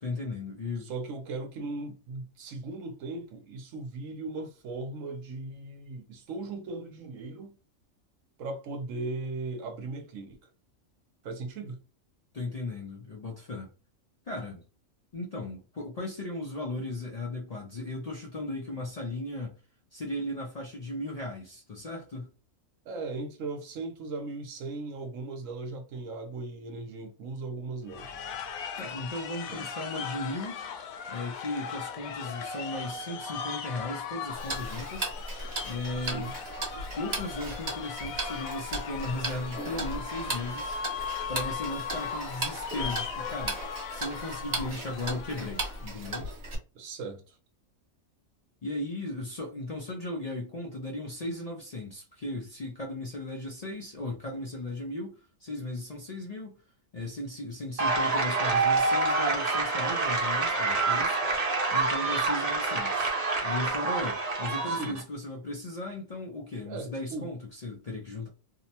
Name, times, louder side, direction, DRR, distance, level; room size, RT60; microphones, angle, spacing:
voice 1, 0.0-0.9 12.3-13.7 14.3-14.6 15.1-19.6 19.9-22.3 28.8-30.6 31.1-35.1 35.6-36.3 36.8-40.8 41.3-43.6 43.9-46.3 48.6-56.6 56.9-61.4 61.7-63.2 63.4-68.3, left 2 dB, 65° left, 0.4 m, -36 dB
voice 2, 0.8-7.6 8.4-10.4 11.2-11.8 22.9-28.1 29.5-29.7 36.0-36.3 46.7-47.4 64.7-65.0 66.7-67.3, right 3 dB, 75° right, 1.0 m, -38 dB
sound 1, 27.9-45.9, left 6 dB, 85° left, 1.0 m, -38 dB
Tick-tock, 34.3-46.6, right 2 dB, 50° right, 1.1 m, -37 dB
sound 2, 57.8-65.0, right 3 dB, 35° right, 0.7 m, -27 dB
2.7 x 2.1 x 2.7 m
omnidirectional pair, 1.4 m